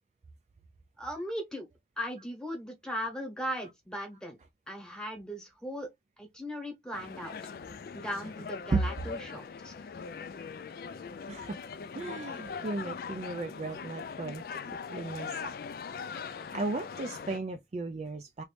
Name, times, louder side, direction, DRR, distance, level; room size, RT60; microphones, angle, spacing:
voice 1, 1.0-1.7 2.0-4.4 4.7-5.9 6.2-7.4 7.9-9.7, equal, 5° left, 1.0 m, -38 dB
sound 1, 6.9-17.4, left 6 dB, 55° left, 0.3 m, -41 dB
voice 2, 11.3-11.6 11.9-14.6 14.9-15.5 16.2-18.4, right 3 dB, 35° right, 0.3 m, -35 dB
3.0 x 2.6 x 3.2 m
head